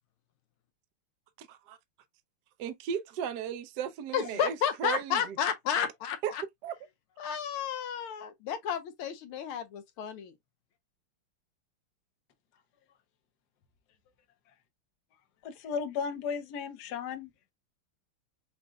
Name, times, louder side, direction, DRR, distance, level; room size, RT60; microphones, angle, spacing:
voice 1, 1.4-1.8 2.6-5.4 6.2-6.3 6.6-6.7, right 8 dB, 70° right, 1.0 m, -35 dB
voice 2, 4.1-6.4 7.2-10.3, left 8 dB, 80° left, 1.5 m, -32 dB
voice 3, 15.4-17.3, left 6 dB, 60° left, 1.2 m, -35 dB
6.1 x 2.5 x 2.3 m
omnidirectional pair, 2.4 m